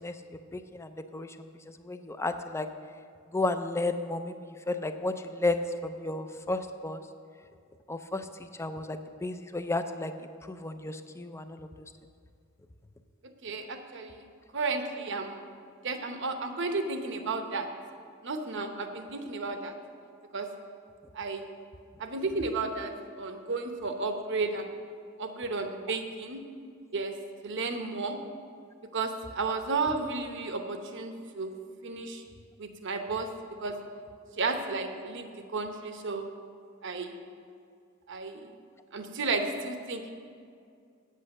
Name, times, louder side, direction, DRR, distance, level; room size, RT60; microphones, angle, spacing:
voice 1, 0.5-1.5 1.8-2.7 3.3-7.0 7.9-8.3 8.6-10.1 10.5-11.7, left 2 dB, 15° left, 9 dB, 0.4 m, -33 dB
voice 2, 13.4-14.2 14.5-15.5 15.8-17.7 18.2-19.7 20.3-20.5 21.1-21.5 22.0-24.7 25.2-26.4 26.9-27.2 27.4-28.2 28.9-31.5 31.8-32.2 32.6-33.3 33.6-33.7 34.4-36.3 36.8-37.2 38.1-38.5 38.9-40.1, right 3 dB, 60° right, 6 dB, 0.9 m, -33 dB
8.7 x 8.4 x 6.5 m, 2.3 s
head